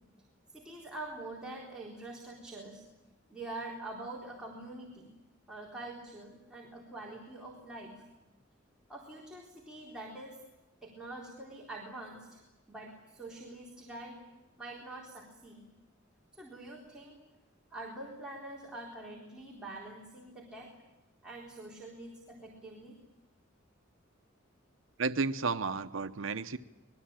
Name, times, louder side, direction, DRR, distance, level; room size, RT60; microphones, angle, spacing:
voice 1, 0.5-2.8 3.3-5.1 5.5-7.9 8.9-10.4 10.8-12.4 12.7-14.2 14.6-15.6 16.3-17.2 17.7-20.7 21.2-22.9, right 2 dB, 5° right, -4 dB, 4.1 m, -45 dB
voice 2, 25.0-26.6, right 4 dB, 70° right, 9 dB, 0.8 m, -32 dB
26.0 x 21.5 x 8.9 m, 1.0 s
head